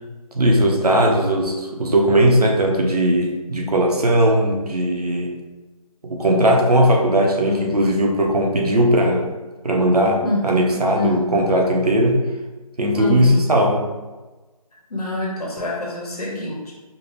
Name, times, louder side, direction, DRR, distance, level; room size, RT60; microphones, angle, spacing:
voice 1, 0.3-5.3 6.0-9.3 9.6-12.2 12.8-13.8, right 1 dB, 80° right, 1 dB, 0.9 m, -18 dB
voice 2, 10.2-11.4 12.9-13.5 14.9-16.7, left 2 dB, 80° left, -3 dB, 1.2 m, -26 dB
4.9 x 3.3 x 2.5 m, 1.2 s
figure-of-eight pair, 155°, 19 cm